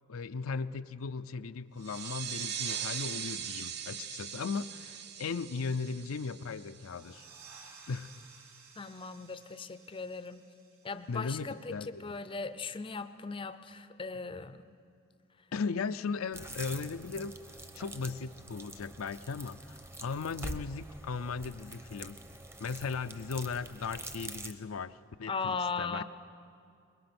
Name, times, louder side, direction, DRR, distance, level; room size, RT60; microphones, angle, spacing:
voice 1, 0.1-7.3 7.9-8.1 11.1-12.1 15.5-17.4 17.7-22.2 22.6-26.0, left 5 dB, 85° left, 11 dB, 0.5 m, -37 dB
sound 1, 1.8-7.1, right 8 dB, 50° right, 0.8 m, -40 dB
sound 2, 6.6-11.9, right 5 dB, 80° right, 3.1 m, -56 dB
voice 2, 8.8-10.4 10.8-14.6 25.3-26.0, left 4 dB, 25° left, 11 dB, 0.5 m, -38 dB
sound 3, 16.3-24.5, right 1 dB, 15° right, 0.8 m, -45 dB
22.5 x 21.0 x 6.0 m, 2.4 s
head